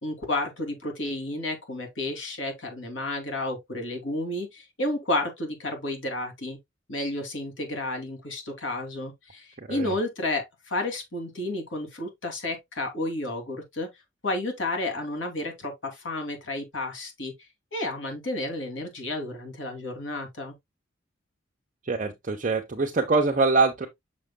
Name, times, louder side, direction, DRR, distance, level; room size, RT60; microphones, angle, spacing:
voice 1, 0.0-6.6 6.9-13.9 14.2-17.3 17.7-20.5, left 2 dB, 80° left, 2.7 m, -31 dB
voice 2, 9.6-9.9 21.8-23.9, right 3 dB, 40° right, 0.9 m, -24 dB
6.6 x 6.5 x 2.2 m
head